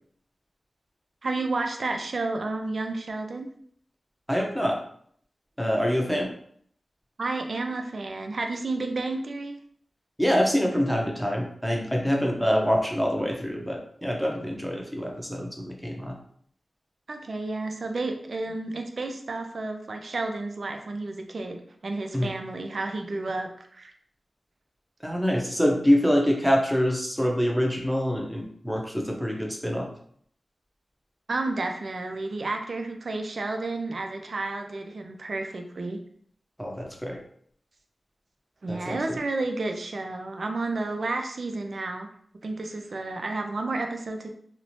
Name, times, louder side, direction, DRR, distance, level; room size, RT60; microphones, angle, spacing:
voice 1, 1.2-3.5 7.2-9.6 17.1-23.9 31.3-36.0 38.6-42.1 42.4-44.3, right 2 dB, 65° right, 4 dB, 0.4 m, -31 dB
voice 2, 4.3-4.8 5.6-6.3 10.2-16.2 22.1-22.3 25.0-29.9 36.6-37.2 38.7-39.2, equal, 5° right, 0 dB, 0.7 m, -25 dB
3.0 x 2.0 x 2.6 m, 0.63 s
cardioid pair, 45°, 0 cm